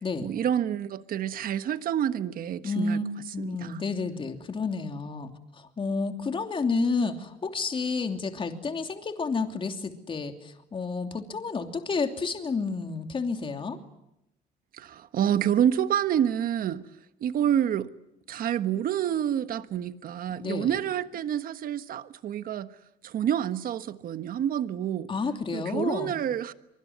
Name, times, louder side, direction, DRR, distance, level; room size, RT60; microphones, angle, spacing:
voice 1, 0.2-3.0 3.4-3.8 14.7-16.8 17.2-17.9 18.3-22.7 23.0-25.1 25.5-26.5, right 10 dB, 60° right, 1.3 m, -28 dB
voice 2, 2.6-3.1 3.3-5.3 5.6-13.8 20.4-20.7 25.1-26.2, left 4 dB, 30° left, 2.9 m, -30 dB
24.5 x 24.0 x 9.5 m
cardioid pair, 110°, 17 cm